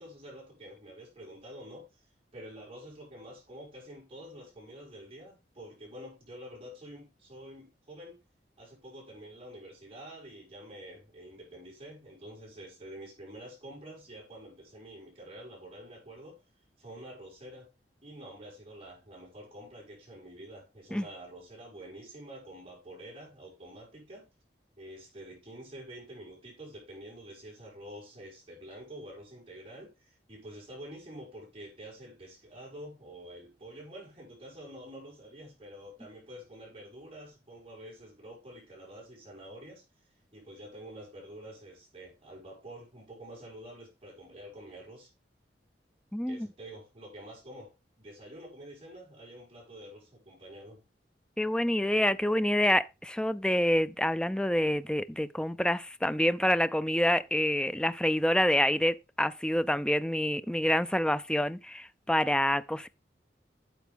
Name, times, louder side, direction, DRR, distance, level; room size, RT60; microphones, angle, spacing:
voice 1, 0.0-1.9 2.3-8.2 8.6-16.4 16.8-17.7 18.0-24.3 24.8-39.8 40.3-45.1 46.3-50.8, right 1 dB, 35° right, 6.0 m, -48 dB
voice 2, 46.1-46.5 51.4-62.9, left 1 dB, 5° left, 0.4 m, -27 dB
9.3 x 7.1 x 3.6 m
head